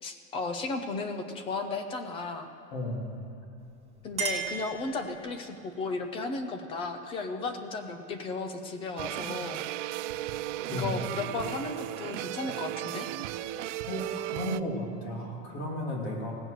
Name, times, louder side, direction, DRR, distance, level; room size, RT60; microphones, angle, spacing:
voice 1, 0.0-2.5 4.0-9.6 10.7-13.1, left 3 dB, 15° left, 8 dB, 0.3 m, -34 dB
voice 2, 2.7-3.1 10.7-11.0 13.9-14.1 14.3-16.3, left 1 dB, 55° left, -1 dB, 2.6 m, -33 dB
Chink clink, 3.6-5.5, right 6 dB, 15° right, 1.3 m, -36 dB
sound 1, 9.0-14.6, right 14 dB, 65° right, 0.5 m, -35 dB
17.0 x 7.8 x 6.5 m, 2.7 s
supercardioid pair, 160°, 39 cm